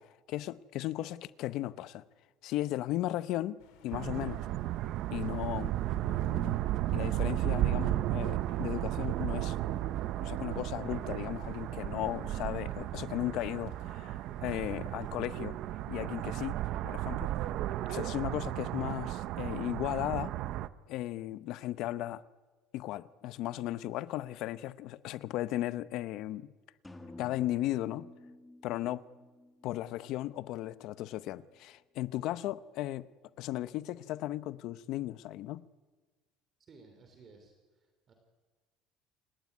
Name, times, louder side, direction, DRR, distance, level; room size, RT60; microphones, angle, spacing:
voice 1, 0.0-2.0 2.4-4.5 5.1-5.8 6.0-6.6 6.9-9.6 10.2-15.6 15.9-16.6 16.8-17.4 17.9-20.3 20.9-22.2 22.7-26.5 27.2-28.1 28.6-29.0 29.6-33.1 33.4-35.7, left 15 dB, 50° left, 0.7 m, -36 dB
sound 1, 3.6-15.1, left 8 dB, 80° left, 5.0 m, -61 dB
sound 2, 3.9-20.7, right 14 dB, 45° right, 0.7 m, -34 dB
sound 3, 26.8-30.6, left 2 dB, 5° left, 1.8 m, -52 dB
voice 2, 36.6-38.1, right 4 dB, 25° right, 3.1 m, -58 dB
28.0 x 18.5 x 9.6 m
cardioid pair, 180°, 0 cm